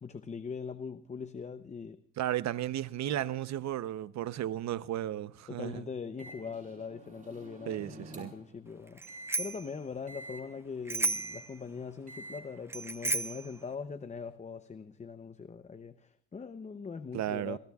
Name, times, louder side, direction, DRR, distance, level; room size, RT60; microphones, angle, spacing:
voice 1, 0.0-2.0 5.5-17.6, left 5 dB, 25° left, 0.7 m, -41 dB
voice 2, 2.2-5.8 7.7-8.3 17.1-17.6, right 12 dB, 60° right, 0.8 m, -34 dB
Microwave oven, 6.2-8.5 9.1-9.4 10.1-10.4 11.1-11.4 12.1-12.4, right 2 dB, 25° right, 5.5 m, -48 dB
Bicycle bell, 9.0-9.7 10.9-11.4 12.7-13.5, right 3 dB, 10° right, 0.7 m, -33 dB
29.0 x 17.0 x 2.4 m
cardioid pair, 120°, 31 cm